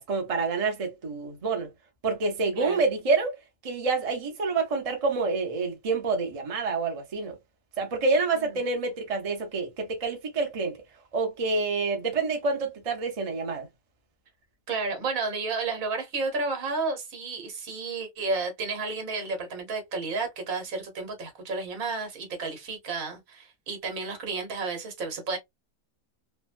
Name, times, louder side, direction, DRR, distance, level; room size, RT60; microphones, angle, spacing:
voice 1, 0.1-1.7 2.0-3.3 3.6-7.4 7.8-10.8 11.1-13.7, right 4 dB, 35° right, 0.6 m, -27 dB
voice 2, 14.7-25.4, right 3 dB, 70° right, 1.4 m, -32 dB
3.2 x 2.1 x 2.4 m
omnidirectional pair, 1.5 m